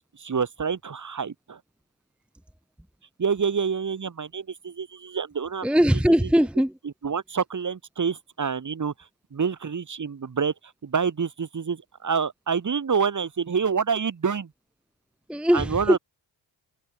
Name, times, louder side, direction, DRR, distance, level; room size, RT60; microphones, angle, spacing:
voice 1, 0.0-1.6 3.2-5.7 7.0-8.9 9.3-10.5 10.8-14.5 15.5-16.0, right 6 dB, 40° right, 4.9 m, -27 dB
voice 2, 5.6-6.8 15.3-16.0, equal, ahead, 1.2 m, -20 dB
open air
cardioid pair, 85°, 47 cm